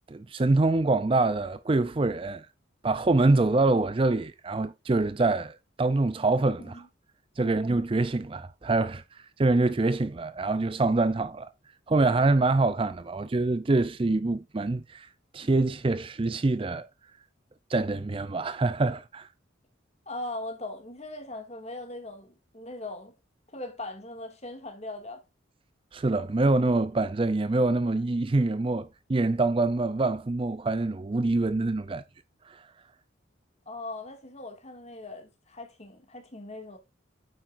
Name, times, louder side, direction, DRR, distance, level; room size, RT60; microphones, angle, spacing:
voice 1, 0.1-2.5 2.8-6.7 7.4-9.0 9.4-11.5 11.9-15.1 15.3-16.9 17.7-19.3 25.9-32.0 32.5-32.6, right 2 dB, 25° right, 0.4 m, -25 dB
voice 2, 20.1-23.1 23.5-25.2 33.7-36.8, left 2 dB, 35° left, 2.1 m, -40 dB
9.1 x 7.5 x 2.5 m
head